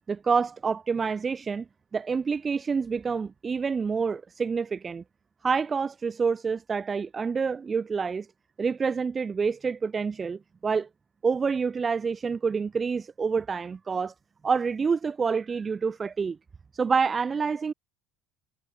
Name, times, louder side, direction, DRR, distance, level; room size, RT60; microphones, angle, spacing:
voice 1, 0.1-1.6 1.9-5.0 5.4-8.3 8.6-10.9 11.2-14.1 14.4-16.4 16.7-17.7, right 5 dB, 20° right, 1.3 m, -27 dB
cardioid pair, 135°, 0 cm